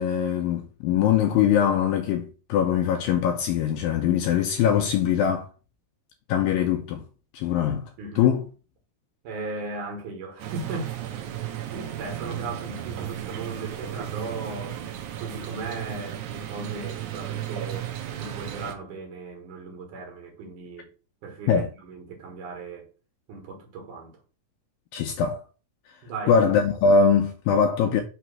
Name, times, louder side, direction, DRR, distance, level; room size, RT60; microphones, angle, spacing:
voice 1, 0.0-5.5 6.3-7.0 7.3-7.8 8.2-8.4 21.5-21.7 24.9-25.4 26.3-28.0, left 7 dB, 85° left, 2.0 m, -22 dB
voice 2, 8.0-8.3 9.2-11.3 11.7-14.8 15.2-20.9 21.2-22.9 23.3-24.2 26.0-26.4, right 3 dB, 60° right, 2.6 m, -37 dB
sound 1, 10.4-18.7, right 11 dB, 85° right, 1.7 m, -35 dB
5.9 x 3.1 x 5.7 m
omnidirectional pair, 4.6 m